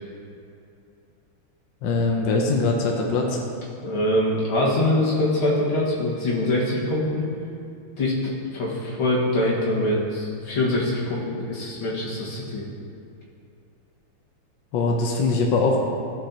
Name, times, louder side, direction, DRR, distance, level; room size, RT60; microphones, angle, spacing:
voice 1, 1.8-3.4 14.7-15.8, left 3 dB, 70° left, 0 dB, 1.4 m, -22 dB
voice 2, 3.8-7.3 8.0-8.1 8.5-12.6, left 1 dB, 85° left, -6 dB, 2.5 m, -23 dB
16.5 x 5.6 x 2.9 m, 2.6 s
omnidirectional pair, 2.3 m